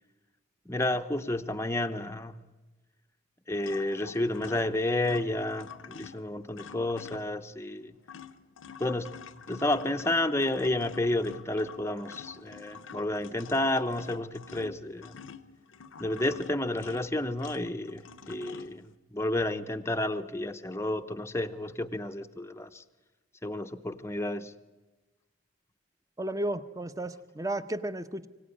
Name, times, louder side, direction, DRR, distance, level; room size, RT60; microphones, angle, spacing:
voice 1, 0.7-2.4 3.5-7.9 8.8-9.1 9.5-15.2 16.0-22.8 23.4-24.5, left 1 dB, 15° left, 7 dB, 0.7 m, -31 dB
sound 1, 3.6-7.5 7.8-18.9, left 6 dB, 80° left, 0.8 m, -47 dB
voice 2, 26.2-28.3, right 1 dB, 15° right, 11 dB, 0.8 m, -33 dB
24.5 x 17.0 x 9.9 m, 1.2 s
head